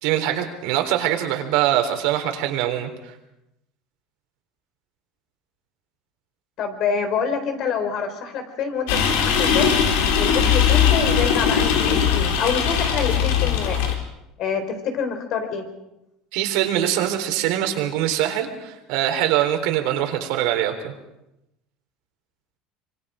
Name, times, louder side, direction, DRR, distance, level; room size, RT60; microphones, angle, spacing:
voice 1, 0.0-2.9 16.3-20.9, right 12 dB, 75° right, 5 dB, 3.7 m, -23 dB
voice 2, 6.6-9.7 10.2-14.0 14.4-15.6, left 6 dB, 50° left, 8 dB, 4.0 m, -26 dB
sound 1, 8.9-14.0, left 7 dB, 85° left, 3.8 m, -20 dB
25.5 x 24.5 x 5.0 m, 0.89 s
cardioid pair, 135°, 0 cm